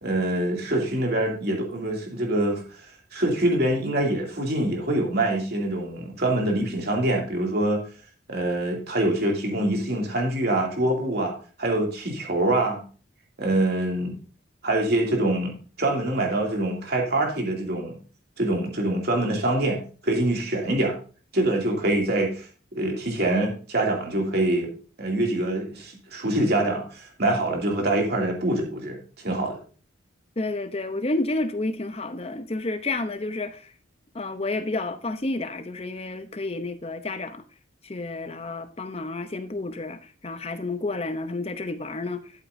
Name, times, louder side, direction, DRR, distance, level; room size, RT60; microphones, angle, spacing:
voice 1, 0.0-2.6 3.1-7.8 8.3-12.8 13.4-14.2 14.6-18.0 18.4-21.0 21.3-22.5 22.7-24.7 25.0-29.6, right 1 dB, 50° right, 2.6 m, -25 dB
voice 2, 30.4-33.7 34.1-37.4 37.8-42.3, left 2 dB, 30° left, 0.7 m, -30 dB
12.0 x 8.3 x 2.6 m
head